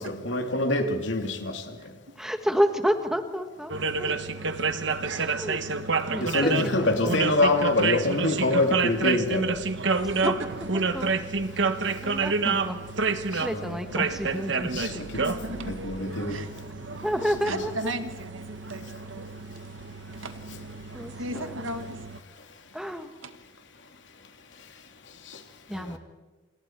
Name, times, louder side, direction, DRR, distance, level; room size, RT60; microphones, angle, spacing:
voice 1, 0.0-1.8 6.2-9.5 12.4-12.6 13.3-13.8 14.7-16.4 17.5-17.6 25.3-25.4 25.7-26.0, left 2 dB, 70° left, 5 dB, 2.7 m, -26 dB
voice 2, 1.2-2.2 4.0-4.2 5.0-5.3 10.1-10.5 10.8-10.9 14.1-14.3 15.2-15.9 16.3-16.5 17.4-19.3 20.1-20.4 21.2-22.2 23.2-23.4, right 1 dB, 90° right, 8 dB, 1.9 m, -37 dB
voice 3, 2.2-3.7 4.0-4.1 5.2-5.6 6.1-6.5 10.7-11.1 11.5-11.7 12.0-12.8 13.4-15.0 17.0-17.7 20.9-21.5 22.7-23.1 25.7-26.0, equal, ahead, 7 dB, 1.6 m, -29 dB
sound 1, 3.7-22.2, right 4 dB, 70° right, 1.3 m, -29 dB
28.0 x 27.0 x 4.6 m, 1.3 s
head